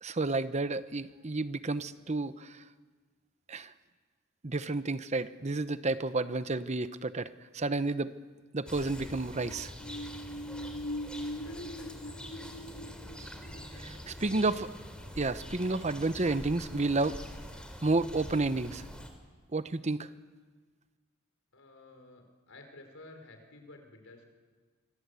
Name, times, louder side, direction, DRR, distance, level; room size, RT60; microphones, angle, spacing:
voice 1, 0.0-2.6 3.5-3.7 4.4-8.1 8.5-9.7 13.2-13.3 13.8-14.7 15.2-17.2 17.8-18.8 19.5-20.1, right 3 dB, 35° right, 12 dB, 0.9 m, -31 dB
sound 1, 8.7-19.1, equal, 5° left, 3.7 m, -45 dB
voice 2, 8.8-9.2 11.4-12.2 13.7-14.5 21.5-24.3, left 2 dB, 80° left, 4 dB, 5.0 m, -54 dB
sound 2, 9.3-15.5 15.9-16.0, equal, 50° left, 3.6 m, -42 dB
27.5 x 25.5 x 8.3 m, 1.4 s
head